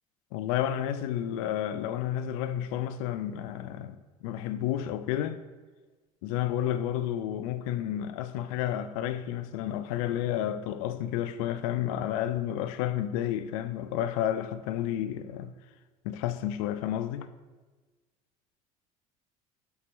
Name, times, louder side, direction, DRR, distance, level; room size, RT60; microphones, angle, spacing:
voice 1, 0.3-5.4 6.2-15.5 16.0-17.3, left 11 dB, 75° left, 0.5 m, -31 dB
11.5 x 4.7 x 3.0 m
hypercardioid pair, 75°, 18 cm